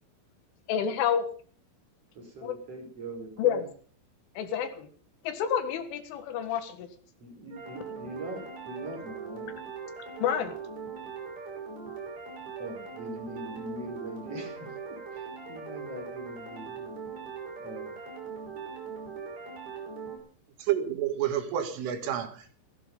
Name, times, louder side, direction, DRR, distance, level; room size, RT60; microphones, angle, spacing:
voice 1, 0.7-1.3 2.4-2.6 3.4-3.6 4.4-4.9 5.3-6.9 10.2-10.5, left 9 dB, 75° left, 4.0 m, -28 dB
voice 2, 2.1-3.6 7.2-9.6 12.6-17.0 17.5-17.9, right 1 dB, 30° right, 5.8 m, -42 dB
sound 1, 7.5-20.2, right 5 dB, 50° right, 7.4 m, -40 dB
voice 3, 20.6-22.5, right 10 dB, 80° right, 4.2 m, -29 dB
16.0 x 15.0 x 5.4 m
omnidirectional pair, 5.8 m